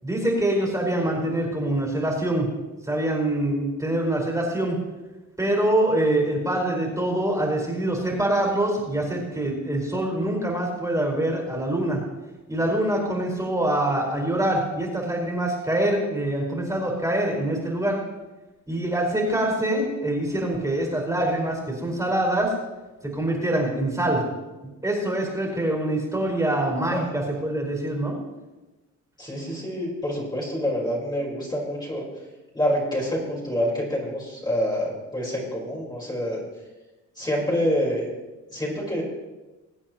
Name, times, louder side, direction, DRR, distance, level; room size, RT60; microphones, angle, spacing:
voice 1, 0.0-2.5 2.8-4.8 5.4-12.0 12.5-18.0 18.7-22.5 23.0-24.2 24.6-28.1, right 1 dB, 10° right, -1 dB, 4.8 m, -25 dB
voice 2, 29.2-32.0 32.5-36.4 37.2-38.1 38.5-39.0, equal, 15° left, -4 dB, 4.3 m, -27 dB
23.5 x 8.5 x 3.0 m, 1.1 s
cardioid pair, 90°, 30 cm